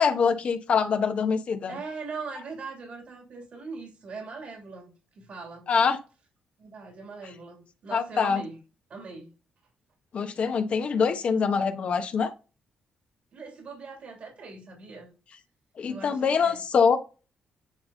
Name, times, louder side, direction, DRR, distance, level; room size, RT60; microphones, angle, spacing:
voice 1, 0.0-1.8 5.7-6.0 7.9-8.4 10.1-12.3 15.8-17.0, left 6 dB, 60° left, 1.2 m, -24 dB
voice 2, 1.7-5.7 6.6-8.6 8.9-9.3 10.8-11.2 13.3-15.2 15.9-16.6, right 4 dB, 60° right, 3.0 m, -41 dB
9.6 x 3.6 x 4.0 m
supercardioid pair, 65°, 2 cm